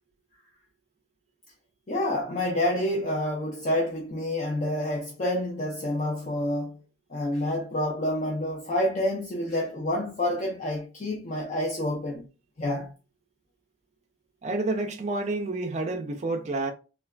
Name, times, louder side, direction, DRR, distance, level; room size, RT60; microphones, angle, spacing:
voice 1, 1.9-6.8 7.1-12.3 12.6-12.9, left 1 dB, 45° left, 0.6 m, -28 dB
voice 2, 14.4-16.7, right 2 dB, 40° right, 0.4 m, -29 dB
3.2 x 2.2 x 2.3 m
head